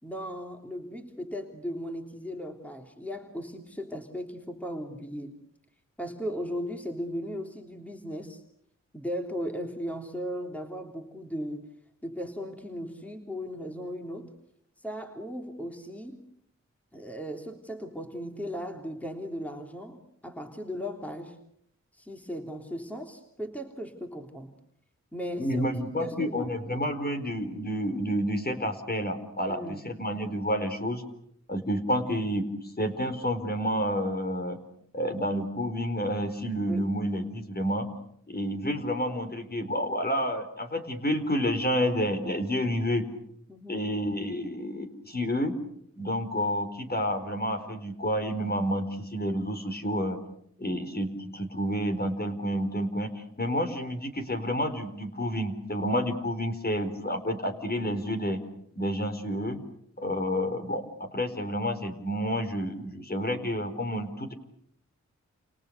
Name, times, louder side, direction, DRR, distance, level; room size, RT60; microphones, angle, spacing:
voice 1, 0.0-5.3 6.0-8.4 8.9-11.7 12.0-14.3 14.8-16.3 16.9-21.4 21.9-24.5 25.1-25.7 25.9-26.5 29.5-29.9 36.7-36.8 43.5-43.8, equal, 5° left, 3 dB, 3.3 m, -37 dB
voice 2, 25.4-31.0 31.5-32.5 32.8-34.6 34.9-37.9 38.3-43.0 43.7-45.5 46.0-50.2 50.6-53.1 53.4-58.4 58.8-59.6 60.0-64.3, equal, 35° left, 6 dB, 4.6 m, -29 dB
30.0 x 29.0 x 6.7 m, 0.72 s
wide cardioid pair, 70°, 29 cm